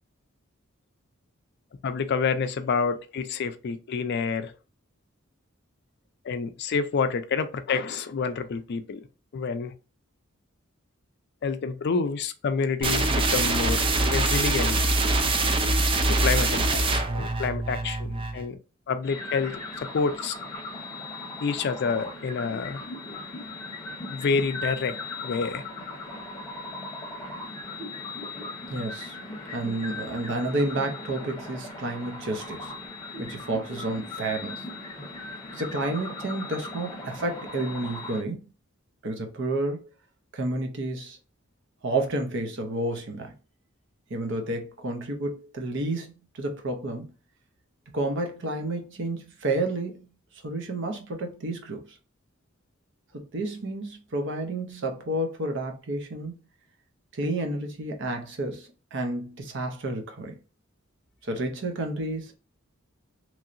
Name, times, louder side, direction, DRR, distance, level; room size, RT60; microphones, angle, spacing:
voice 1, 1.8-4.5 6.2-9.1 9.3-9.7 11.4-13.8 14.1-14.8 16.1-18.6 18.9-20.4 21.4-22.8 24.1-25.0 25.2-25.6, left 5 dB, 55° left, 0.4 m, -28 dB
sound 1, 12.8-18.4, right 2 dB, 25° right, 0.4 m, -24 dB
sound 2, 19.0-38.2, left 2 dB, 15° left, 0.9 m, -38 dB
voice 2, 28.7-29.2 29.5-32.7 33.2-34.6 35.5-38.4 39.0-39.9 40.3-41.2 41.8-43.3 44.1-47.1 47.9-50.1 50.4-51.8 53.1-56.4 57.1-60.3 61.2-62.3, right 2 dB, 60° right, 0.7 m, -30 dB
3.0 x 2.7 x 2.5 m
head